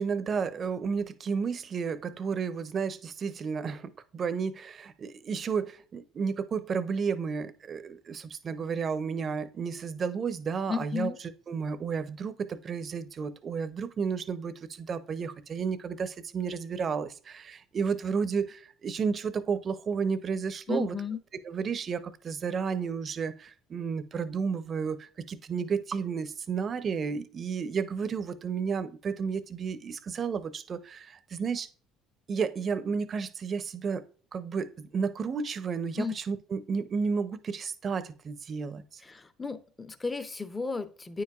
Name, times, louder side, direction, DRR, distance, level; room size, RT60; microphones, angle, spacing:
voice 1, 0.0-11.1 11.5-20.9 21.3-31.7 32.3-34.0 34.3-39.0, right 5 dB, 45° right, 0.5 m, -32 dB
voice 2, 10.7-11.2 20.7-21.2 36.0-36.1 39.0-41.2, left 5 dB, 20° left, 0.6 m, -33 dB
9.2 x 4.7 x 2.4 m
supercardioid pair, 75°, 0 cm